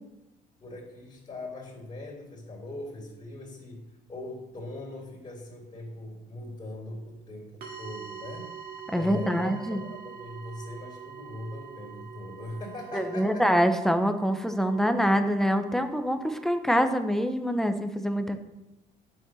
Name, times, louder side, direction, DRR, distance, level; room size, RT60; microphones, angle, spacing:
voice 1, 0.6-8.6 8.9-13.5, left 2 dB, 30° left, -3 dB, 3.5 m, -40 dB
sound 1, 7.6-17.2, right 7 dB, 65° right, 2.5 m, -45 dB
voice 2, 8.9-9.8 12.9-18.4, equal, ahead, 7 dB, 1.0 m, -25 dB
9.8 x 7.5 x 6.4 m, 0.93 s
cardioid pair, 110°, 17 cm